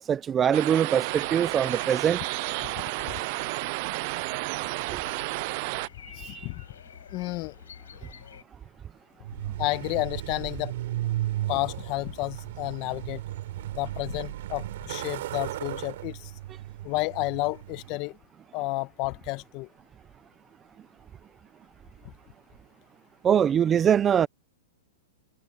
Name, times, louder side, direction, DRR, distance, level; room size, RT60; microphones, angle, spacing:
voice 1, 0.0-2.2 4.9-5.0 6.2-6.5 23.2-24.3, right 8 dB, 20° right, 0.8 m, -23 dB
sound 1, 0.5-5.9, right 27 dB, 45° right, 0.3 m, -31 dB
sound 2, 1.1-8.4, left 8 dB, 90° left, 5.9 m, -49 dB
voice 2, 6.1-6.6 7.1-7.5 9.6-10.7 11.5-13.2 13.7-16.3 16.8-18.1 18.5-19.7, left 22 dB, 40° left, 1.3 m, -31 dB
Truck, 9.2-18.0, right 14 dB, 65° right, 3.9 m, -35 dB
hypercardioid pair, 135°, 0 cm